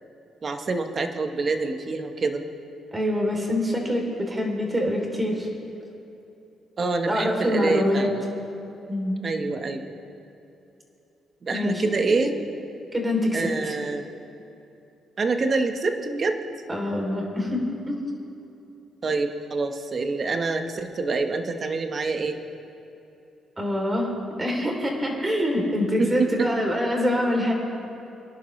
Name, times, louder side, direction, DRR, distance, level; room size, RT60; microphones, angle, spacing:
voice 1, 0.4-2.4 6.8-8.2 9.2-9.9 11.4-12.4 13.3-14.1 15.2-16.4 19.0-22.4 26.0-26.5, right 3 dB, 40° right, 6 dB, 1.2 m, -26 dB
voice 2, 2.9-5.5 7.1-8.1 8.9-9.2 11.5-12.2 12.9-13.7 16.7-18.0 23.6-24.1 24.4-27.5, left 1 dB, 20° right, 1 dB, 3.3 m, -25 dB
25.0 x 11.0 x 3.3 m, 2.9 s
cardioid pair, 90°, 0 cm